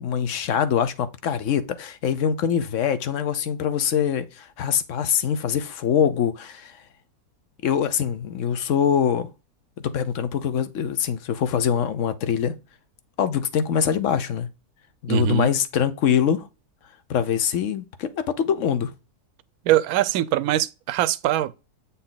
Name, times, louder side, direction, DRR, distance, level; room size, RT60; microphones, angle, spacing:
voice 1, 0.0-6.8 7.6-9.3 9.9-12.5 13.2-14.5 15.0-16.5 17.1-18.9, left 8 dB, 60° left, 0.9 m, -23 dB
voice 2, 15.1-15.5 19.6-21.5, right 13 dB, 75° right, 1.0 m, -22 dB
8.4 x 4.1 x 3.9 m
omnidirectional pair, 1.7 m